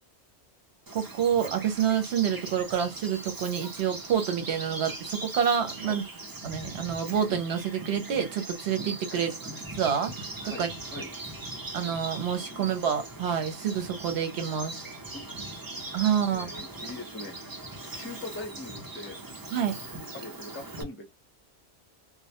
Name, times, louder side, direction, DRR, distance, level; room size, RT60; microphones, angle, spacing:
Bird vocalization bird call bird song, 0.9-20.8, right 2 dB, 30° right, 0.4 m, -40 dB
voice 1, 0.9-6.0 6.4-9.3 9.8-10.1 10.6-10.7 11.7-14.8 15.9-16.5 19.5-19.8, right 8 dB, 75° right, 0.9 m, -28 dB
voice 2, 10.5-11.1 12.5-12.8 15.1-15.6 16.1-19.2 20.1-21.1, left 2 dB, 15° left, 0.6 m, -42 dB
2.1 x 2.1 x 2.7 m
omnidirectional pair, 1.1 m